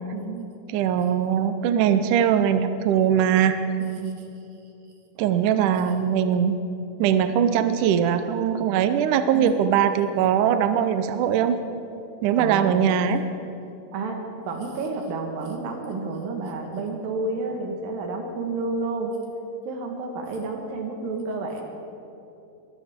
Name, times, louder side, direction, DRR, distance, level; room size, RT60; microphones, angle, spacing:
voice 1, 0.1-0.5 3.8-4.2 9.3-9.6 12.4-12.8 13.9-14.2 14.5-19.2 19.6-21.6, right 3 dB, 65° right, 2 dB, 3.1 m, -30 dB
voice 2, 0.7-3.6 5.2-6.6 7.0-11.6 12.2-13.2, right 8 dB, 90° right, 9 dB, 1.7 m, -21 dB
21.5 x 15.0 x 3.7 m, 2.8 s
omnidirectional pair, 4.6 m